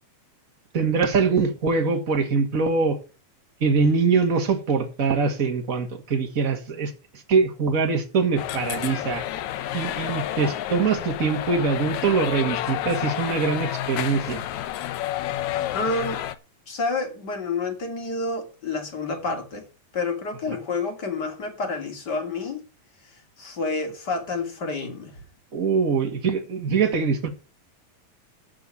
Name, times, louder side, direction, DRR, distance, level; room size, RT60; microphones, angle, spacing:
voice 1, 0.7-3.0 3.6-9.2 9.7-14.4 25.5-27.3, right 5 dB, 40° right, 1.3 m, -23 dB
sound 1, 8.4-16.3, left 12 dB, 75° left, 1.8 m, -30 dB
voice 2, 15.7-16.2 16.7-19.7 19.9-22.6 23.4-25.2, left 3 dB, 30° left, 2.6 m, -29 dB
14.0 x 4.7 x 8.4 m
omnidirectional pair, 4.3 m